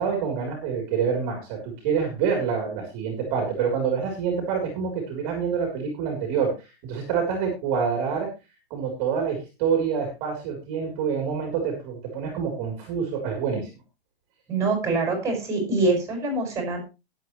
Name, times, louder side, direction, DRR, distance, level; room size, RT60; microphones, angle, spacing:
voice 1, 0.0-8.3 8.7-13.7, right 6 dB, 30° right, 1 dB, 3.8 m, -27 dB
voice 2, 14.5-16.8, right 3 dB, 10° right, 2 dB, 5.9 m, -24 dB
20.5 x 8.2 x 3.2 m, 0.29 s
hypercardioid pair, 165°, 31 cm